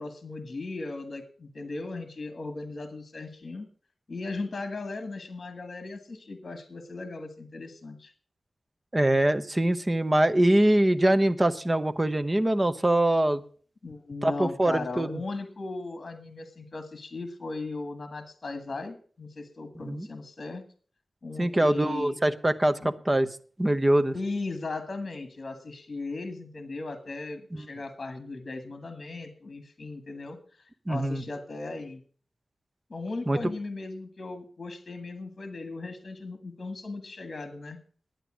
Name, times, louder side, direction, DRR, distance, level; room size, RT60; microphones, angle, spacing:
voice 1, 0.0-3.7 4.1-8.1 13.8-20.6 21.2-22.2 22.8-22.9 24.1-30.4 30.9-32.0 32.9-37.8, left 3 dB, 50° left, 9 dB, 1.6 m, -37 dB
voice 2, 8.9-13.4 14.2-15.2 19.9-20.1 21.4-24.1 27.5-27.7 30.9-31.2 33.3-33.4, right 1 dB, 20° right, 10 dB, 0.8 m, -23 dB
11.0 x 9.2 x 6.1 m, 0.43 s
wide cardioid pair, 80°, 0 cm